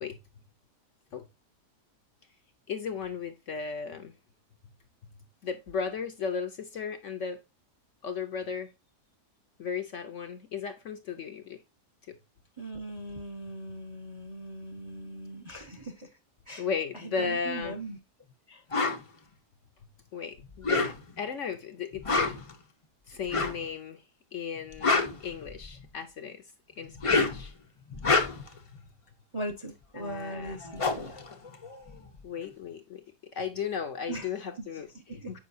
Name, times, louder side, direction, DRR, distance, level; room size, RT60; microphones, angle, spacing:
voice 1, 2.7-4.1 5.4-7.4 8.0-8.7 9.6-11.6 12.1-12.2 16.6-17.8 20.1-22.3 23.1-24.0 24.3-26.4 26.8-27.5 30.0-30.6 32.2-33.0 33.3-35.4, left 6 dB, 60° left, 0.9 m, -35 dB
voice 2, 12.6-16.1 16.5-16.7 17.0-18.0 18.5-18.6 29.3-31.2 34.1-34.3 35.1-35.3, right 1 dB, 25° right, 0.6 m, -39 dB
sound 1, 18.7-19.0 20.5-21.2 21.9-22.5 23.3-23.6 24.6-25.8 26.8-27.5 27.9-28.6 30.1-30.2 30.5-32.1, left 3 dB, 35° left, 0.5 m, -27 dB
7.3 x 5.0 x 2.6 m
omnidirectional pair, 1.8 m